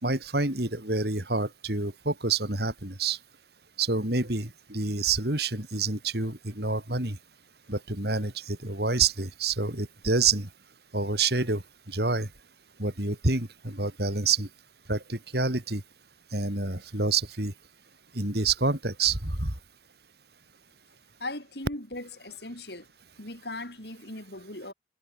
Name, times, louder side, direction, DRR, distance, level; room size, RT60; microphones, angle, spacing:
voice 1, 0.0-3.2 3.8-7.2 7.7-10.5 10.9-12.3 12.8-14.5 14.9-15.8 16.3-17.5 18.1-19.5, right 4 dB, 55° right, 3.4 m, -28 dB
voice 2, 21.2-22.9 23.2-24.7, left 2 dB, 60° left, 7.5 m, -38 dB
head